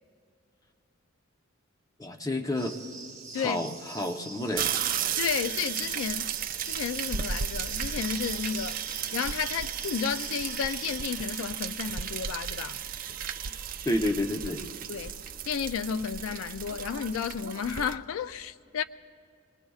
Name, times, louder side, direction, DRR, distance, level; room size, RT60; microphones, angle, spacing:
voice 1, 2.0-2.7 3.3-4.7 13.8-14.6, left 1 dB, 15° left, 0.7 m, -30 dB
sound 1, 2.6-11.0, right 4 dB, 15° right, 1.0 m, -45 dB
sound 2, 4.6-17.9, right 8 dB, 45° right, 0.4 m, -34 dB
voice 2, 5.2-6.3 6.6-8.8 9.1-12.8 14.9-15.2 15.5-18.8, left 7 dB, 85° left, 0.3 m, -32 dB
27.0 x 20.5 x 2.4 m
head